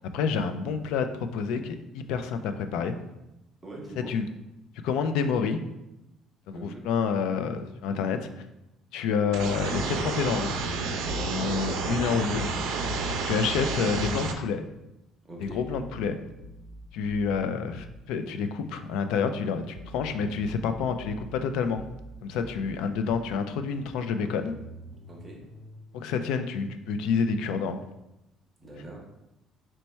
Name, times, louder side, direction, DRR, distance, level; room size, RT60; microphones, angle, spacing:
voice 1, 0.1-2.9 4.1-4.2 4.8-5.6 6.5-8.3 8.9-10.6 11.2-12.5 12.8-12.9 13.3-14.6 15.4-16.2 16.9-21.8 22.2-24.5 25.9-27.8, left 6 dB, 85° left, 8 dB, 0.4 m, -28 dB
voice 2, 3.6-4.1 6.5-6.8 11.1-11.5 15.2-15.7 25.1-25.5 28.6-29.0, right 2 dB, 15° right, -1 dB, 0.8 m, -42 dB
sound 1, 9.3-14.3, right 4 dB, 75° right, 0.5 m, -30 dB
sound 2, 15.4-18.0 19.8-23.4 24.4-26.1, right 1 dB, 45° left, 1.0 m, -46 dB
4.4 x 2.2 x 4.1 m, 0.92 s
cardioid pair, 165°, 0 cm